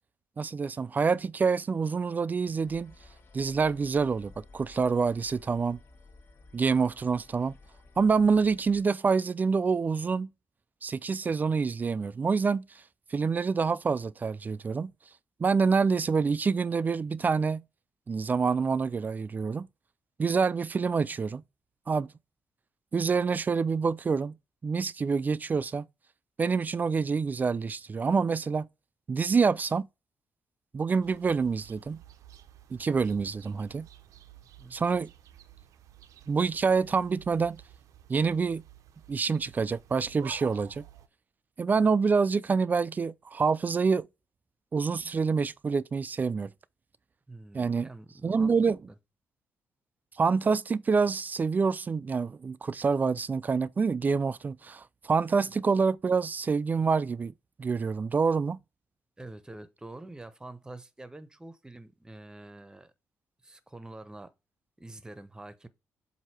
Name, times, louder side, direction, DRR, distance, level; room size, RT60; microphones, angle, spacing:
voice 1, 0.4-2.9 3.3-5.8 6.5-7.6 8.0-10.3 10.8-12.7 13.1-14.9 15.4-17.6 18.1-19.7 20.2-21.4 21.9-22.1 22.9-24.4 24.6-25.8 26.4-28.7 29.1-29.9 30.7-32.0 32.7-33.9 34.7-35.1 36.3-37.6 38.1-38.6 39.1-40.8 41.6-44.1 44.7-46.5 47.5-47.9 48.2-48.8 50.2-57.3 57.6-58.6, right 5 dB, 30° right, 0.4 m, -27 dB
sound 1, 2.6-8.8, left 3 dB, 45° left, 1.5 m, -54 dB
sound 2, 31.0-41.1, right 10 dB, 80° right, 0.7 m, -52 dB
voice 2, 47.3-49.0 55.4-55.6 59.2-62.9 63.4-64.3 64.8-65.7, right 2 dB, 15° right, 0.9 m, -46 dB
7.9 x 2.8 x 4.3 m
cardioid pair, 100°, 6 cm